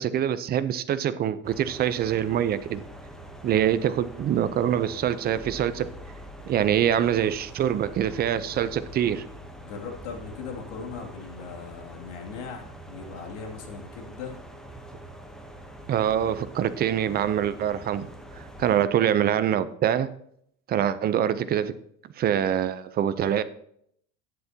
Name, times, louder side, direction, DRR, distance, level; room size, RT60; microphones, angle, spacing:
voice 1, 0.0-2.8 3.4-5.9 6.5-9.3 15.9-18.1 18.4-20.1 20.7-21.7 22.2-23.4, right 10 dB, 30° right, 13 dB, 0.6 m, -25 dB
sound 1, 1.4-18.9, right 1 dB, ahead, 0.8 m, -44 dB
voice 2, 9.6-14.4, left 5 dB, 85° left, 2 dB, 2.6 m, -39 dB
11.5 x 9.7 x 2.8 m, 0.68 s
cardioid pair, 150°, 34 cm